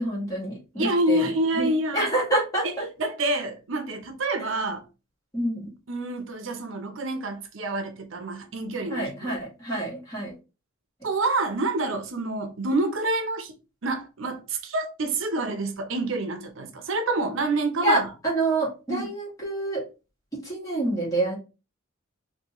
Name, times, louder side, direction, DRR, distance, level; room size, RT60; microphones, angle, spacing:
voice 1, 0.0-1.2 1.5-2.9 5.3-5.7 8.9-10.3 17.8-19.9 20.4-21.4, right 2 dB, 15° left, 1.8 m, -27 dB
voice 2, 0.7-2.1 2.6-2.7 3.0-4.8 5.9-9.3 11.0-13.5 13.8-18.1 18.9-19.1, right 2 dB, 70° right, 0.7 m, -27 dB
3.9 x 2.7 x 2.9 m
head